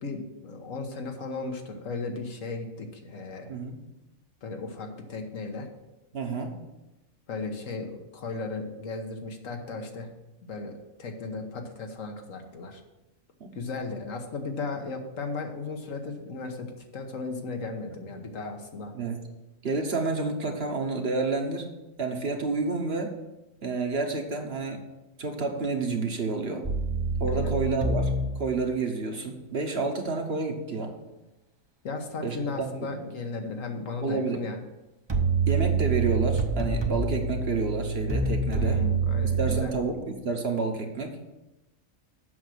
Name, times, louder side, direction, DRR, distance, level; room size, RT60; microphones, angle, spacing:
voice 1, 0.0-3.5 4.4-5.7 7.3-10.1 10.4-12.8 13.5-18.9 27.3-27.5 31.8-34.6 38.5-39.7, left 3 dB, 80° left, 4 dB, 1.5 m, -36 dB
voice 2, 6.1-6.5 13.4-13.5 18.9-19.2 19.6-21.7 22.0-23.2 23.6-24.8 25.2-26.6 27.2-31.0 32.2-32.9 34.0-34.4 35.5-38.8 39.4-41.2, right 3 dB, 50° right, 4 dB, 1.3 m, -29 dB
sound 1, 26.6-28.3 35.1-39.6, right 4 dB, 25° right, 0.7 m, -26 dB
8.0 x 6.3 x 6.2 m, 1.0 s
omnidirectional pair, 1.4 m